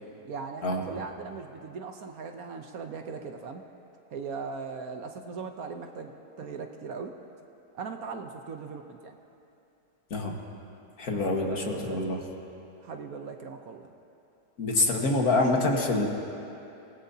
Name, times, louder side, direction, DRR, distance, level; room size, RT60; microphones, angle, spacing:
voice 1, 0.2-3.6 4.1-7.1 7.8-9.1 11.1-12.0 12.8-13.9, right 5 dB, 60° right, 5 dB, 1.2 m, -39 dB
voice 2, 11.0-12.2 14.6-16.1, left 2 dB, 60° left, 0 dB, 2.0 m, -26 dB
28.0 x 18.0 x 2.8 m, 2.8 s
omnidirectional pair, 1.8 m